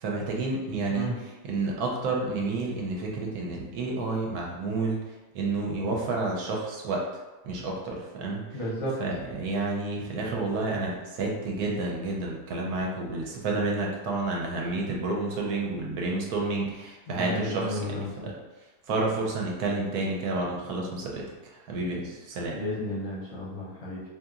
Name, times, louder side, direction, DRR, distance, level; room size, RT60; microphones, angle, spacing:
voice 1, 0.0-1.1 1.5-5.0 5.3-7.0 7.4-8.6 9.0-18.3 18.9-22.6, right 3 dB, 80° right, -1 dB, 1.1 m, -30 dB
voice 2, 8.5-9.0 17.1-18.1 22.5-24.0, equal, 65° left, -5 dB, 1.1 m, -32 dB
2.8 x 2.8 x 2.4 m, 1.1 s
omnidirectional pair, 1.6 m